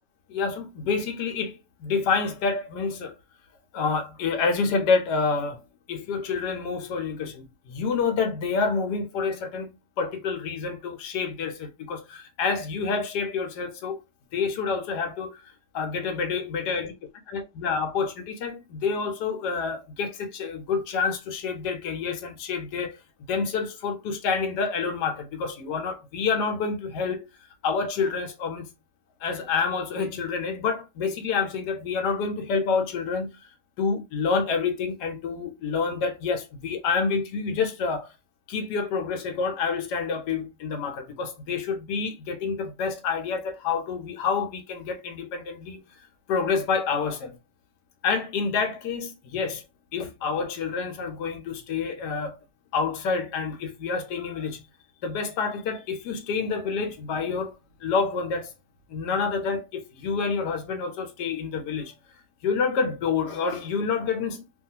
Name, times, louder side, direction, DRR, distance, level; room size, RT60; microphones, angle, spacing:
voice 1, 0.3-3.1 3.7-5.6 5.9-14.0 14.3-16.9 17.3-23.0 23.3-27.3 27.6-28.7 29.2-33.4 33.8-38.1 38.5-45.8 46.3-47.4 48.0-49.6 49.9-52.4 52.7-54.6 55.0-58.5 58.9-61.9 62.4-64.4, left 5 dB, 80° left, 1.3 m, -28 dB
3.0 x 2.3 x 2.8 m
omnidirectional pair, 1.8 m